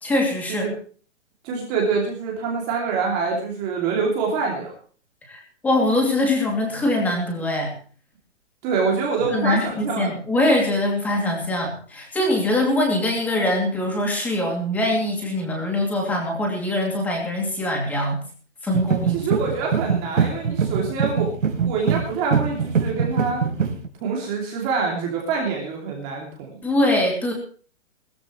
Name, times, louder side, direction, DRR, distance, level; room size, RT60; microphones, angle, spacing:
voice 1, 0.0-0.7 5.3-7.7 9.3-18.2 18.6-19.2 26.6-27.3, left 1 dB, 5° left, 1 dB, 2.6 m, -23 dB
voice 2, 1.4-4.7 8.6-10.1 19.1-21.3 21.6-23.4 24.0-26.6, right 5 dB, 15° right, -1 dB, 2.7 m, -25 dB
sound 1, 18.7-23.9, right 6 dB, 80° right, 3.6 m, -22 dB
21.0 x 14.0 x 3.1 m, 0.42 s
hypercardioid pair, 180°, 38 cm